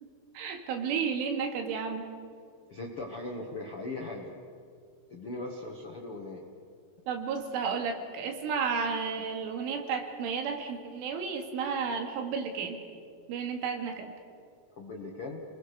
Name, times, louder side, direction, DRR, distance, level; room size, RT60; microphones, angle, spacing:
voice 1, 0.3-2.1 7.1-12.8 13.3-14.1, right 5 dB, 85° right, 4 dB, 4.7 m, -32 dB
voice 2, 2.7-4.3 5.1-6.4 14.8-15.4, left 2 dB, 60° left, 0 dB, 1.5 m, -39 dB
30.0 x 21.0 x 6.7 m, 2.3 s
omnidirectional pair, 5.5 m